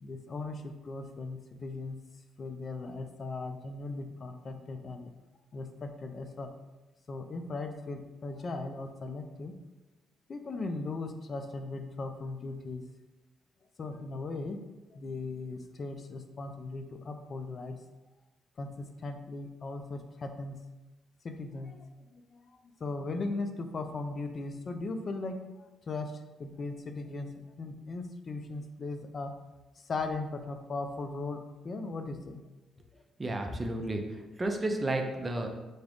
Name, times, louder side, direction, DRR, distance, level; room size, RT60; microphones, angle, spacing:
voice 1, 0.0-2.0 2.4-5.1 5.5-6.5 7.1-9.5 10.3-12.8 13.8-14.6 14.9-17.8 18.6-20.6 21.2-25.5 25.9-29.3 29.8-32.4, left 3 dB, 45° left, 7 dB, 0.4 m, -38 dB
voice 2, 33.2-35.5, right 2 dB, 25° right, 3 dB, 0.5 m, -32 dB
3.9 x 2.4 x 3.4 m, 1.1 s
cardioid pair, 90°, 0 cm